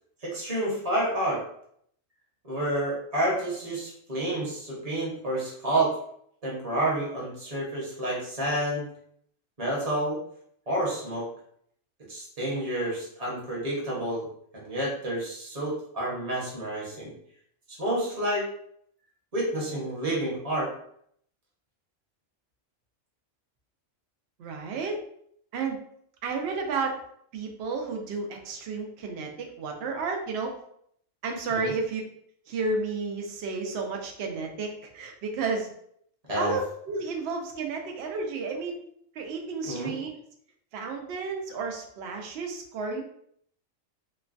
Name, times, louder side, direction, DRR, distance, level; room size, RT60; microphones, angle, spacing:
voice 1, 0.2-1.4 2.4-5.9 6.4-8.9 9.6-10.2 10.7-11.3 12.1-14.2 14.5-17.1 17.7-18.4 19.3-20.7 31.5-31.7 36.3-36.5 39.7-39.9, right 1 dB, 35° right, -5 dB, 0.9 m, -29 dB
voice 2, 24.4-25.0 25.5-25.8 26.2-27.0 27.3-30.5 31.2-32.0 32.5-35.7 36.4-38.8 39.1-40.1 40.7-43.0, right 4 dB, 65° right, 2 dB, 0.7 m, -32 dB
3.0 x 2.1 x 2.5 m, 0.68 s
omnidirectional pair, 1.3 m